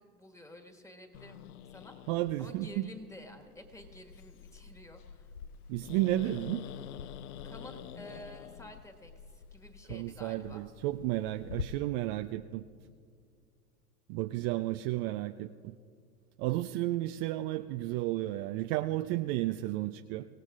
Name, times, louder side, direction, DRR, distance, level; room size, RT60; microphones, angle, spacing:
voice 1, 0.0-1.4 1.7-5.3 7.4-10.6, equal, 5° left, 4 dB, 1.7 m, -51 dB
Growling, 1.1-11.6, left 8 dB, 75° left, 0.7 m, -46 dB
voice 2, 2.1-2.9 5.7-6.7 9.9-12.6 14.1-15.7 16.4-20.3, right 16 dB, 45° right, 9 dB, 0.5 m, -32 dB
25.0 x 17.5 x 2.5 m, 2.2 s
hypercardioid pair, 95°, 46 cm